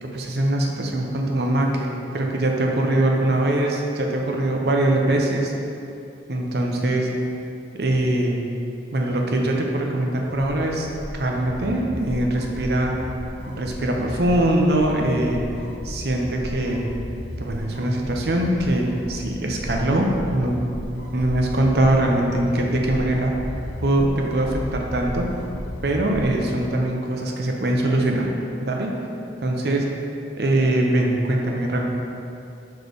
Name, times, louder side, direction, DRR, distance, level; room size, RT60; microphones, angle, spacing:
voice 1, 0.0-5.5 6.3-7.1 7.8-8.3 8.9-10.9 11.1-13.0 13.5-15.4 15.8-16.8 17.4-20.6 21.1-23.3 23.8-25.3 25.8-28.3 28.6-28.9 29.4-29.8 30.4-31.8, right 1 dB, 65° right, 0 dB, 0.7 m, -22 dB
sound 1, 10.2-26.6, left 1 dB, 85° left, 0.8 m, -35 dB
6.1 x 3.3 x 5.3 m, 2.7 s
head